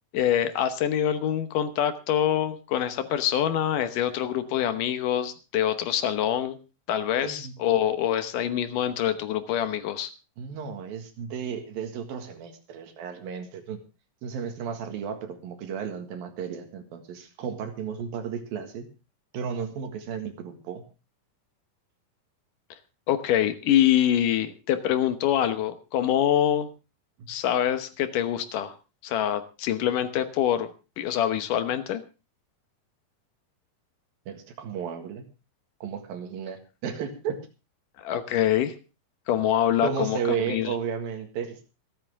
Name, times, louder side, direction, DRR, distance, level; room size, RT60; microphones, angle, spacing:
voice 1, 0.1-6.6 6.9-10.1 23.1-26.7 27.3-28.7 29.0-30.7 31.0-32.0 38.0-38.7 39.3-40.2 40.5-40.7, left 10 dB, 70° left, 10 dB, 2.5 m, -25 dB
voice 2, 7.2-7.5 10.4-13.8 14.2-18.9 19.3-20.8 27.2-27.3 34.3-35.2 35.8-37.4 38.4-38.5 39.8-41.7, right 7 dB, 85° right, 6 dB, 3.7 m, -33 dB
26.0 x 8.9 x 3.5 m, 0.31 s
omnidirectional pair, 4.0 m